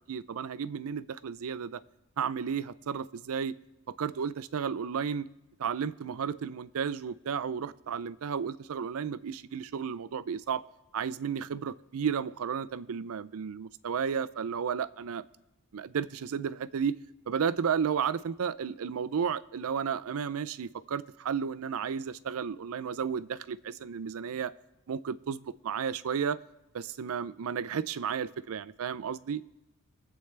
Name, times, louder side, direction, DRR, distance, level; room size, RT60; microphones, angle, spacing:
voice 1, 0.1-1.8 2.2-3.6 4.0-5.3 5.6-10.6 10.9-15.2 15.7-17.0 17.3-24.5 24.9-26.4 26.7-29.5, right 7 dB, 70° right, 15 dB, 0.4 m, -33 dB
23.0 x 7.9 x 3.3 m, 0.98 s
head